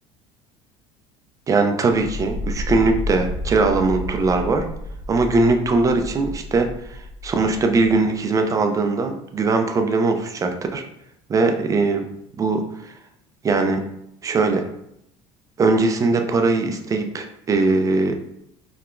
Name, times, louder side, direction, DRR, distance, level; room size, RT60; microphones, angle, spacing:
voice 1, 1.5-4.7 5.1-10.8 11.3-12.1 12.4-12.9 13.4-13.9 14.2-14.7 15.6-18.2, right 3 dB, 25° right, 5 dB, 0.3 m, -20 dB
sound 1, 1.9-7.9, left 1 dB, 75° left, 0.4 m, -31 dB
2.8 x 2.1 x 2.4 m, 0.76 s
supercardioid pair, 105°, 14 cm